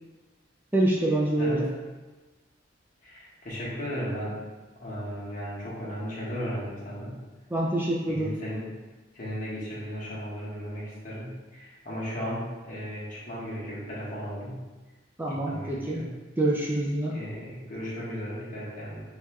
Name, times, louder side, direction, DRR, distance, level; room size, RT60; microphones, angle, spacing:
voice 1, 0.7-1.7 7.5-8.3 15.2-16.0 16.4-17.1, right 1 dB, 10° right, -4 dB, 0.4 m, -26 dB
voice 2, 1.4-1.8 3.0-4.4 4.8-7.2 8.1-8.7 9.1-14.7 15.3-16.2 17.1-19.0, equal, 45° left, -7 dB, 1.4 m, -35 dB
6.5 x 2.8 x 2.2 m, 1.2 s
head